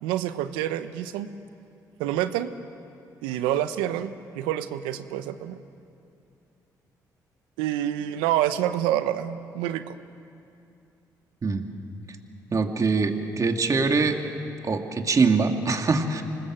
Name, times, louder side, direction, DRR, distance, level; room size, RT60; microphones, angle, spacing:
voice 1, 0.0-1.3 2.0-2.5 3.2-5.6 7.6-9.9, right 12 dB, 90° right, 12 dB, 0.9 m, -27 dB
voice 2, 12.5-14.2 14.6-16.2, right 4 dB, 45° right, 5 dB, 2.3 m, -23 dB
26.5 x 19.5 x 7.7 m, 2.6 s
supercardioid pair, 55°, 8 cm